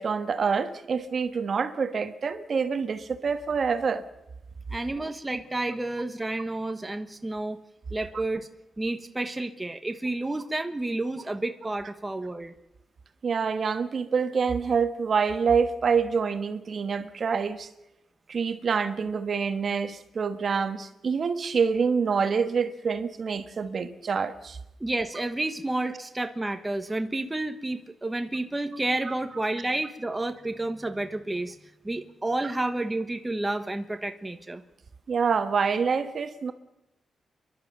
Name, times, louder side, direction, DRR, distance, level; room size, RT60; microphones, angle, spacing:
voice 1, 0.0-4.0 13.2-17.7 18.3-24.6 29.1-29.2 35.1-36.5, right 5 dB, 50° right, 1.4 m, -26 dB
voice 2, 4.7-7.6 7.9-8.5 8.8-12.5 24.8-31.6 31.8-34.6, right 2 dB, 15° right, 1.2 m, -30 dB
29.5 x 11.5 x 7.6 m
cardioid pair, 110°, 0 cm